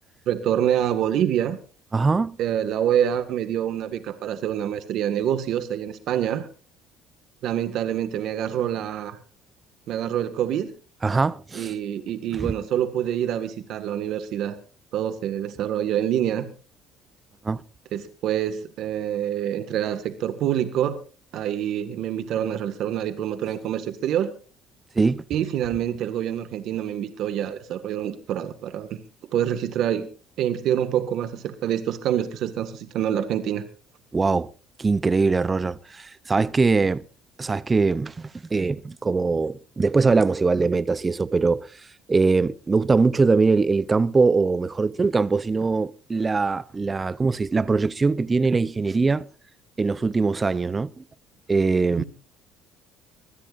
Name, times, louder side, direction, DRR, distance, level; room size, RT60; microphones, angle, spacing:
voice 1, 0.3-1.6 2.4-6.5 7.4-9.2 9.9-10.7 11.5-14.6 14.9-16.5 17.9-21.0 21.3-24.3 25.3-29.0 29.3-30.1 30.4-33.6 52.0-52.1, right 10 dB, 60° right, 1.8 m, -26 dB
voice 2, 1.9-2.4 11.0-11.7 12.4-12.5 17.4-17.6 25.0-25.2 34.1-34.5 34.8-37.0 37.4-41.7 42.1-49.3 49.8-50.9 51.5-52.0, right 4 dB, 20° right, 0.6 m, -22 dB
23.5 x 16.5 x 2.6 m
cardioid pair, 140°, 0 cm